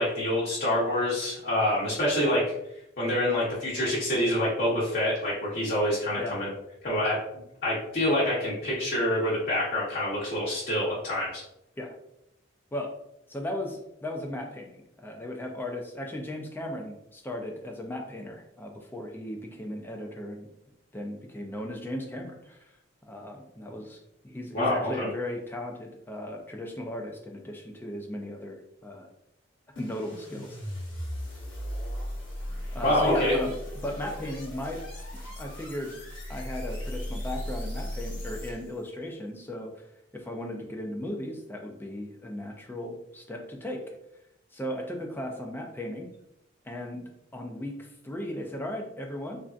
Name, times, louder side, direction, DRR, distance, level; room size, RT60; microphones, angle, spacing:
voice 1, 0.0-2.4 3.0-6.5 6.8-7.2 7.6-11.4 24.5-25.1 32.8-33.3, left 1 dB, 50° left, -8 dB, 0.8 m, -26 dB
voice 2, 13.3-20.5 20.9-22.7 23.1-29.1 29.8-30.6 32.7-33.5 33.8-34.8 35.1-35.9 36.3-39.8 40.1-43.8 44.5-46.1 46.6-49.4, left 1 dB, 10° left, 2 dB, 0.3 m, -36 dB
sound 1, 29.7-38.8, equal, 65° left, 1.0 m, -37 dB
3.3 x 2.5 x 2.4 m, 0.81 s
head